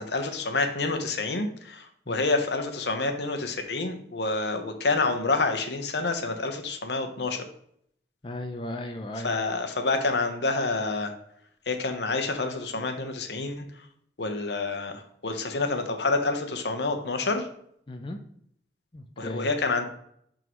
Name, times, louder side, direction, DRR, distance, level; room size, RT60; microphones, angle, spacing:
voice 1, 0.0-7.4 9.2-11.1 11.7-13.6 14.2-17.5 19.2-19.9, left 3 dB, 75° left, 6 dB, 0.9 m, -28 dB
voice 2, 8.2-9.3 17.9-18.2 18.9-19.5, left 1 dB, 30° left, 4 dB, 0.5 m, -36 dB
11.0 x 3.8 x 3.1 m, 0.68 s
head